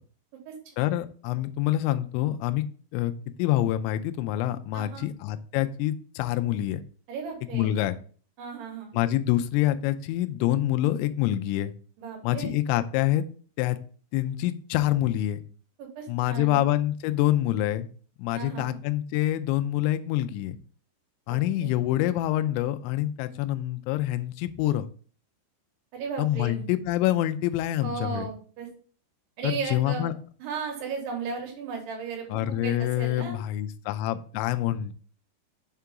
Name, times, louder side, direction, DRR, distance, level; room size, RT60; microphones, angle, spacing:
voice 1, 0.8-2.6 2.9-3.1 3.4-6.8 7.5-8.0 8.9-11.7 12.2-13.2 13.6-13.8 14.1-15.4 16.1-17.9 18.2-20.6 21.3-24.9 26.2-28.3 29.4-30.1 32.3-34.9, left 14 dB, 90° left, 9 dB, 2.6 m, -26 dB
voice 2, 4.7-5.1 7.1-7.7 8.4-8.9 12.0-12.5 15.8-16.6 18.3-18.8 21.3-21.7 25.9-26.7 27.8-28.7 29.4-30.1 30.4-33.4, right 5 dB, 70° right, 1 dB, 2.9 m, -35 dB
7.0 x 3.7 x 3.5 m, 0.43 s
omnidirectional pair, 5.7 m